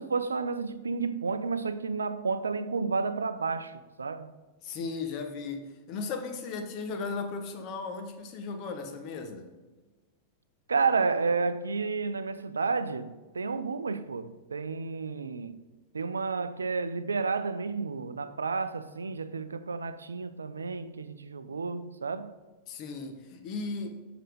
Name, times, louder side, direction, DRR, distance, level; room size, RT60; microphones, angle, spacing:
voice 1, 0.0-4.3 10.7-15.6 15.9-22.3, right 4 dB, 75° right, 0.4 m, -31 dB
voice 2, 4.6-9.5 22.7-24.0, left 4 dB, 40° left, 1.0 m, -36 dB
7.6 x 5.0 x 5.0 m
figure-of-eight pair, 90°, 0 cm